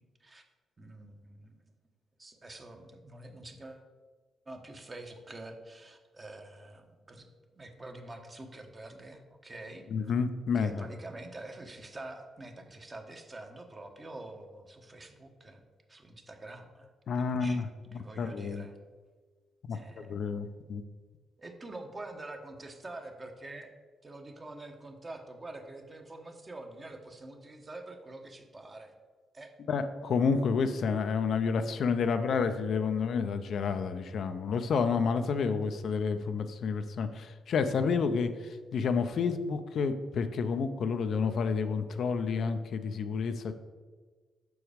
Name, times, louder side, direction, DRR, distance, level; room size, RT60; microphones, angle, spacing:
voice 1, 0.8-1.6 2.2-3.9 4.5-7.3 7.5-10.1 10.6-15.6 15.9-16.9 17.1-17.6 17.9-18.8 19.7-20.2 21.4-23.7 24.0-28.9 29.3-29.6, right 2 dB, 35° right, 4 dB, 1.1 m, -46 dB
voice 2, 9.9-10.9 17.1-17.7 17.9-18.7 19.6-20.8 29.7-43.5, left 5 dB, 65° left, 9 dB, 0.5 m, -30 dB
6.2 x 4.7 x 5.0 m, 1.4 s
supercardioid pair, 55°, 0 cm